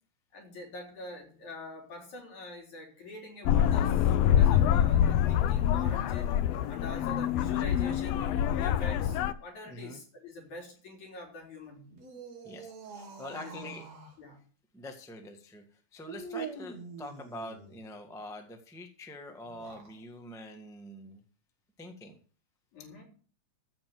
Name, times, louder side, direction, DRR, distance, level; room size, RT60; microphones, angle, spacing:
voice 1, 0.3-6.3 6.7-11.8 13.3-13.7 14.2-14.4 22.7-23.0, left 2 dB, 65° left, 0 dB, 4.8 m, -45 dB
sound 1, 3.5-9.3, left 10 dB, 85° left, 1.4 m, -25 dB
voice 2, 9.6-10.0 12.4-13.8 14.7-21.2 21.8-22.2, left 1 dB, 5° left, 4 dB, 0.5 m, -45 dB
sound 2, 11.9-14.2 16.0-17.8 19.4-20.0, right 5 dB, 60° right, 3.4 m, -44 dB
14.0 x 5.4 x 7.7 m, 0.41 s
omnidirectional pair, 3.6 m